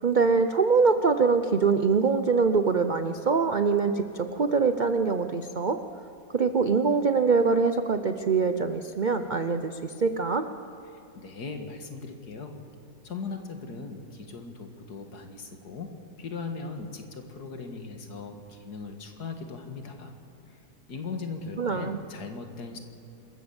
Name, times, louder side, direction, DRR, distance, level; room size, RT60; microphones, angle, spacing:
voice 1, 0.0-5.8 6.3-10.5 21.6-22.0, right 5 dB, 90° right, 9 dB, 0.4 m, -24 dB
voice 2, 10.9-12.6 13.0-20.1 20.5-20.6 20.9-22.8, left 4 dB, 65° left, 5 dB, 2.3 m, -39 dB
26.5 x 14.5 x 7.1 m, 2.6 s
omnidirectional pair, 1.9 m